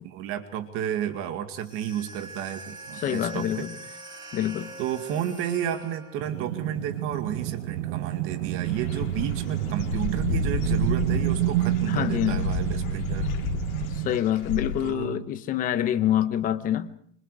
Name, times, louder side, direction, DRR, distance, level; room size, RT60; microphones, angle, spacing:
voice 1, 0.0-3.7 4.8-13.3 14.8-15.2, right 10 dB, 30° right, 2.2 m, -32 dB
sound 1, 1.5-6.3, right 2 dB, 10° right, 7.1 m, -43 dB
voice 2, 3.0-3.7 4.3-4.7 11.9-12.5 13.9-16.9, left 11 dB, 20° left, 1.0 m, -26 dB
sound 2, 6.2-14.2, right 14 dB, 60° right, 1.1 m, -29 dB
Dog / Bird, 8.6-14.9, left 6 dB, 85° left, 4.2 m, -32 dB
26.5 x 25.5 x 4.9 m
supercardioid pair, 170°, 41 cm